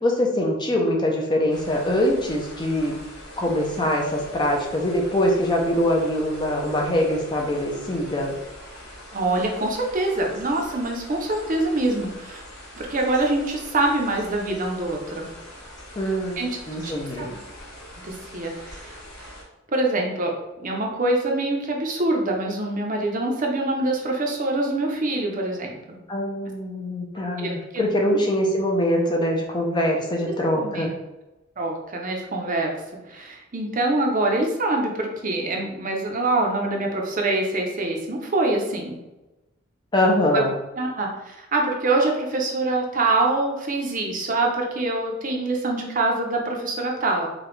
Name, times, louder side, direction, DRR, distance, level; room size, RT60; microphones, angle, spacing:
voice 1, 0.0-3.0 3.4-8.4 16.0-16.4 16.7-17.3 26.1-30.9 39.9-40.5, left 1 dB, 20° left, 0 dB, 0.5 m, -23 dB
sound 1, 1.5-19.4, left 1 dB, 55° left, 1.4 m, -43 dB
voice 2, 9.1-12.4 12.8-15.3 16.4-16.6 16.8-17.4 18.0-19.3 19.7-20.3 20.6-26.0 27.4-27.9 30.5-30.9 31.6-32.7 33.1-39.0 40.3-40.4 40.8-47.3, right 2 dB, 40° right, 1 dB, 0.6 m, -25 dB
4.9 x 2.3 x 3.1 m, 1.0 s
head